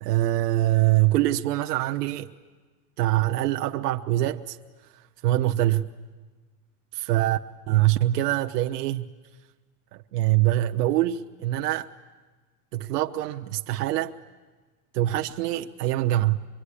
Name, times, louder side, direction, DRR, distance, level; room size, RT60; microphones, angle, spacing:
voice 1, 0.0-2.3 3.0-4.6 5.2-5.9 7.1-7.4 7.7-9.1 10.1-11.9 12.7-14.1 14.9-16.4, right 15 dB, 90° right, 1.0 m, -24 dB
24.5 x 24.0 x 9.9 m
supercardioid pair, 155°, 46 cm